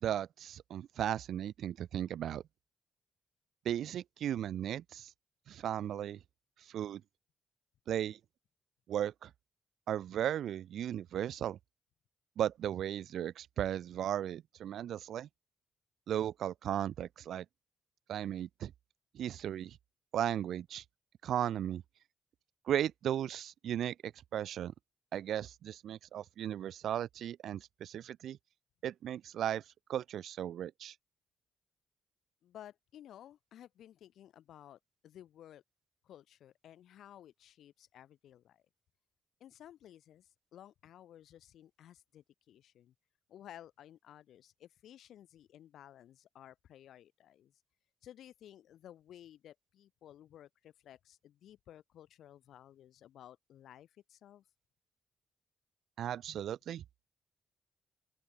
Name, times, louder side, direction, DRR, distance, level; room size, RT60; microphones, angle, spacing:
voice 1, 0.0-2.4 3.6-5.1 5.5-6.2 6.7-7.0 7.9-8.2 8.9-9.3 9.9-11.6 12.4-15.3 16.1-17.5 18.1-18.7 19.1-19.8 20.1-20.8 21.2-21.8 22.7-24.7 25.1-28.4 28.8-29.6 29.9-30.9 56.0-56.8, right 10 dB, 80° right, 0.5 m, -36 dB
voice 2, 32.4-35.6 36.0-38.6 39.4-42.9 43.3-47.6 48.0-54.4, left 11 dB, 80° left, 5.0 m, -55 dB
open air
cardioid pair, 90°, 0 cm